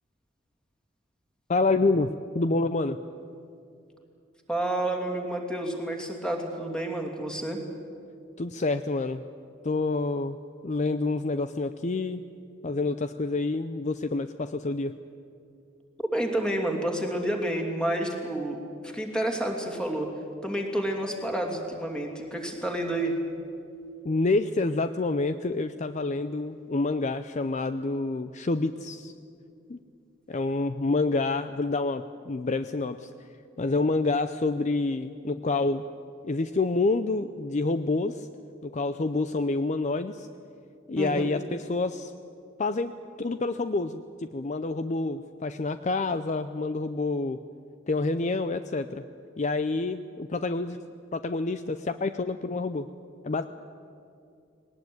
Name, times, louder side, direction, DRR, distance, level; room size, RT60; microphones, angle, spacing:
voice 1, 1.5-3.0 8.4-9.2 9.6-10.4 10.6-12.2 12.6-14.9 24.0-29.1 29.7-29.8 30.3-33.1 33.6-35.8 36.2-38.3 38.6-40.3 40.9-42.1 42.6-47.4 47.9-49.0 49.4-50.8 51.1-52.9 53.2-53.4, left 3 dB, 40° left, 11 dB, 0.5 m, -28 dB
voice 2, 4.5-7.6 16.0-20.1 20.4-23.2 41.0-41.3, right 1 dB, 5° left, 2 dB, 2.7 m, -29 dB
20.0 x 19.0 x 9.4 m, 2.5 s
head